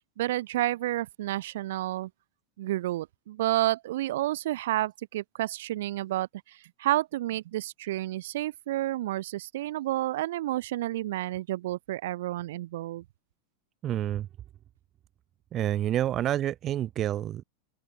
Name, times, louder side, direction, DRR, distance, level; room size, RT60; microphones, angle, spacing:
voice 1, 0.2-2.1 2.6-13.0, right 15 dB, 70° right, 1.3 m, -30 dB
voice 2, 13.8-14.3 15.5-17.4, right 12 dB, 35° right, 1.0 m, -28 dB
open air
hypercardioid pair, 105°, 0 cm